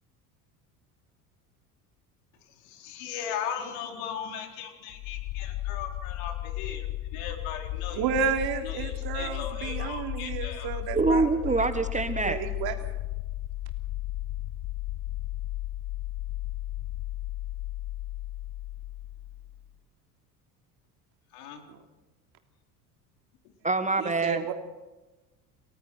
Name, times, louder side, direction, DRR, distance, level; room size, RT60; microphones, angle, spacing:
voice 1, 2.6-6.9 7.1-8.0 8.6-10.8 21.3-21.6, left 8 dB, 65° left, 4 dB, 4.2 m, -38 dB
sound 1, 4.9-19.7, left 15 dB, 50° left, 0.7 m, -35 dB
voice 2, 7.9-11.7 12.0-12.8 21.7-21.8 24.0-24.5, right 7 dB, 55° right, 5 dB, 3.3 m, -32 dB
voice 3, 10.9-12.4 23.6-24.4, right 3 dB, 15° right, 11 dB, 1.3 m, -25 dB
29.5 x 18.5 x 6.0 m, 1.1 s
hypercardioid pair, 70°, 45 cm